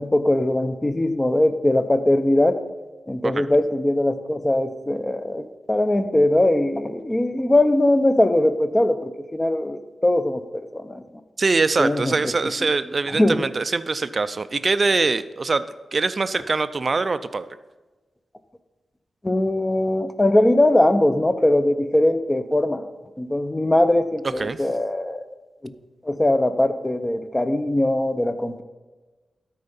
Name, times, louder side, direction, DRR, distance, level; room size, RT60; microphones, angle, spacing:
voice 1, 0.0-2.6 3.1-11.0 11.8-12.2 13.1-13.4 19.2-22.9 23.2-25.2 25.6-25.7 26.0-28.6, left 1 dB, 15° left, 10 dB, 0.5 m, -21 dB
voice 2, 11.4-15.7 15.9-17.5 24.4-24.6, right 3 dB, 40° right, 14 dB, 0.4 m, -23 dB
13.0 x 4.4 x 5.4 m, 1.2 s
wide cardioid pair, 135°, 0 cm